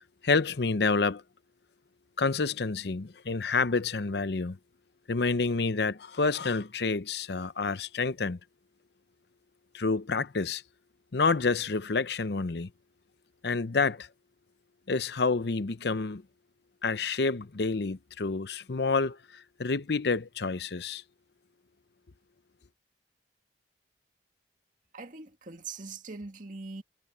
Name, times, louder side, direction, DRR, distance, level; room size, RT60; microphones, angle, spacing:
voice 1, 0.2-1.2 2.2-4.6 5.1-8.4 9.7-10.6 11.1-12.7 13.4-14.1 14.9-16.2 16.8-19.2 19.6-21.0, left 4 dB, 65° left, 0.7 m, -28 dB
voice 2, 24.9-26.8, right 4 dB, 45° right, 2.2 m, -42 dB
head